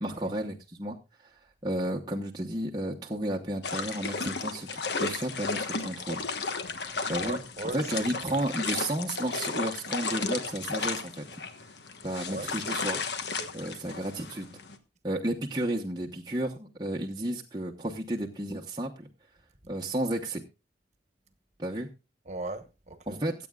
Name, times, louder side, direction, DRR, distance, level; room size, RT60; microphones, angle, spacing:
voice 1, 0.0-6.2 7.1-7.4 7.7-11.3 12.0-13.0 13.5-14.5 15.0-19.1 19.7-20.4 21.6-21.9 23.1-23.3, right 1 dB, 25° right, 1.0 m, -32 dB
sound 1, 3.6-14.8, left 4 dB, 70° left, 1.3 m, -34 dB
voice 2, 7.2-8.5 12.2-12.5 22.3-23.2, right 2 dB, 40° right, 1.3 m, -38 dB
24.0 x 8.5 x 2.4 m
head